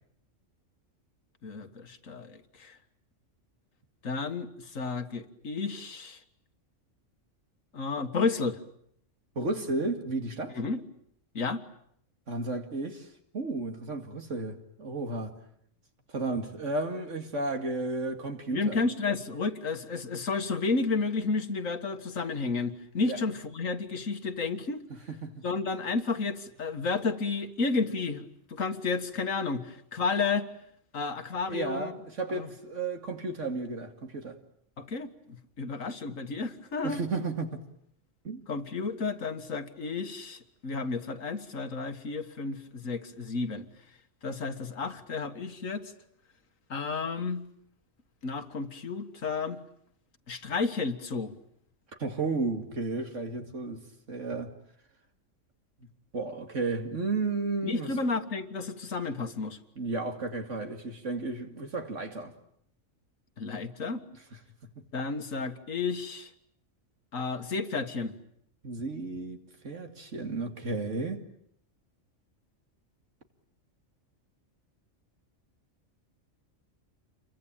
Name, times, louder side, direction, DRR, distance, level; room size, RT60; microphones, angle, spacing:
voice 1, 1.4-2.8 4.0-6.2 7.7-8.6 10.5-10.8 11.3-11.6 18.5-24.8 25.4-30.5 30.9-31.9 32.3-32.5 34.8-37.0 38.5-43.7 44.2-45.9 46.7-47.4 48.2-49.6 50.3-51.3 57.6-59.6 63.4-64.0 64.9-66.3 67.1-68.1, left 4 dB, 80° left, 2.1 m, -32 dB
voice 2, 9.4-10.6 12.3-13.1 13.3-15.4 16.1-18.8 23.0-23.2 25.1-25.3 31.5-34.4 36.8-37.6 38.2-38.4 52.0-54.5 56.1-57.9 59.8-62.3 68.6-71.2, right 3 dB, 65° right, 2.7 m, -33 dB
28.5 x 23.5 x 9.0 m
omnidirectional pair, 1.4 m